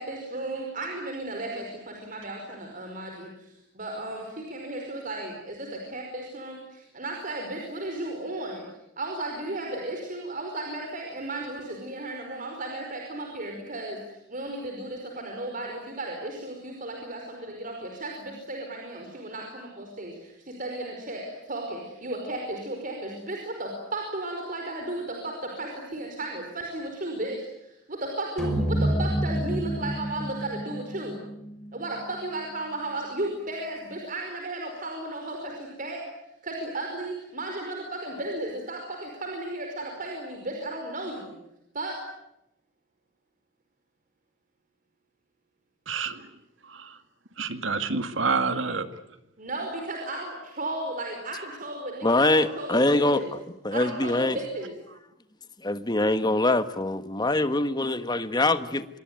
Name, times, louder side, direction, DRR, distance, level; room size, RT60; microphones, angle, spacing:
voice 1, 0.0-3.3 3.7-8.7 9.0-14.0 14.3-27.4 27.9-31.2 31.7-36.0 36.4-41.3 41.7-42.0 49.4-53.3 53.7-54.7, right 2 dB, 45° right, 5.1 m, -34 dB
sound 1, 28.4-32.7, right 1 dB, 5° left, 4.9 m, -29 dB
voice 2, 45.9-46.3 46.6-47.0 47.4-48.9, right 4 dB, 80° right, 2.2 m, -28 dB
voice 3, 52.0-53.4 53.6-54.4 55.6-58.9, left 2 dB, 20° left, 1.4 m, -24 dB
26.5 x 22.5 x 9.5 m
head